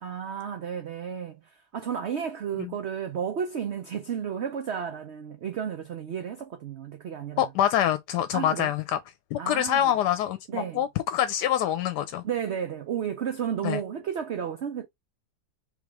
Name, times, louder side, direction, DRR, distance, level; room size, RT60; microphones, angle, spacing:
voice 1, 0.0-7.5 8.3-8.7 9.4-9.9 10.5-10.8 12.2-14.9, right 8 dB, 55° right, 0.8 m, -32 dB
voice 2, 7.4-9.0 9.3-12.2 13.6-13.8, left 11 dB, 85° left, 1.2 m, -25 dB
3.8 x 3.0 x 4.7 m
omnidirectional pair, 1.7 m